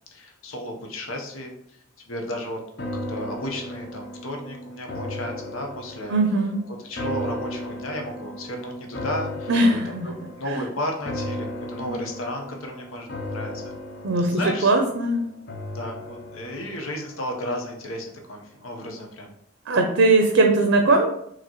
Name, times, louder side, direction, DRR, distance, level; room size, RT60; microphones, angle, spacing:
voice 1, 0.1-1.6 2.1-2.6 3.1-6.2 6.8-13.7 14.2-14.7 15.7-19.3, left 1 dB, 90° left, 2 dB, 0.9 m, -33 dB
sound 1, 2.8-18.1 18.5-18.6, left 1 dB, 55° left, 0.6 m, -36 dB
voice 2, 6.1-6.6 9.5-10.1 10.5-10.6 11.8-11.9 14.0-15.2 19.7-21.1, right 2 dB, 70° right, 3 dB, 0.6 m, -20 dB
4.8 x 3.0 x 3.0 m, 0.72 s
head